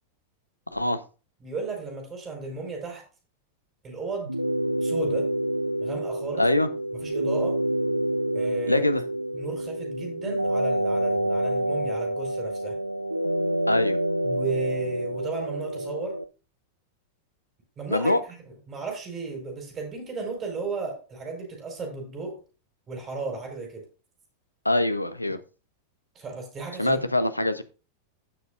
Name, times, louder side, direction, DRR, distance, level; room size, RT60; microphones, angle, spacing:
voice 1, 1.4-3.0 3.8-4.4 4.8-5.3 5.8-6.5 6.9-7.6 8.3-8.8 9.3-12.8 14.2-16.2 17.8-22.4 22.9-23.8 26.1-27.0, right 3 dB, 25° right, 2 dB, 4.9 m, -34 dB
sound 1, 4.2-16.2, right 1 dB, 85° right, 0.5 m, -28 dB
voice 2, 6.4-6.7 8.7-9.0 13.7-14.0 17.9-18.2 24.6-25.4 26.8-27.6, left 1 dB, 85° left, 12 dB, 0.7 m, -23 dB
16.0 x 6.7 x 2.5 m, 0.34 s
figure-of-eight pair, 90°, 0 cm